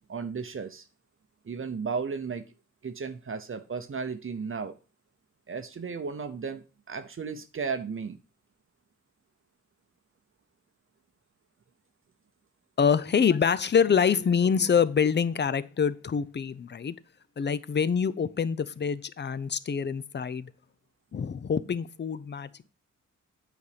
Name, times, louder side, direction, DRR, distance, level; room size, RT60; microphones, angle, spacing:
voice 1, 0.1-0.9 1.4-2.4 2.8-4.8 5.5-8.2, right 5 dB, 45° right, 9 dB, 0.7 m, -34 dB
voice 2, 12.8-17.0 17.4-20.5 21.1-22.7, left 6 dB, 35° left, 16 dB, 0.5 m, -26 dB
8.4 x 4.1 x 4.9 m, 0.31 s
wide cardioid pair, 90°, 30 cm